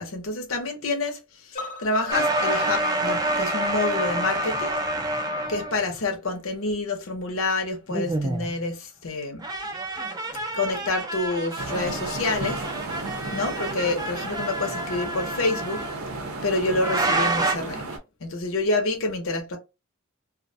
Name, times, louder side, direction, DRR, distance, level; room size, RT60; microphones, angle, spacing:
voice 1, 0.0-4.8 5.5-9.5 10.5-12.7 13.3-15.9 16.4-19.6, left 2 dB, 70° left, 0.7 m, -28 dB
sound 1, 1.5-5.6 5.9-6.0 6.3-6.4 6.7-6.8, left 4 dB, 40° left, 0.6 m, -37 dB
sound 2, 2.1-6.0 7.9-8.5 9.4-16.0 16.8-17.5, right 1 dB, 20° right, 0.4 m, -28 dB
sound 3, 11.6-18.0, right 2 dB, 80° right, 0.7 m, -34 dB
2.4 x 2.1 x 2.5 m
head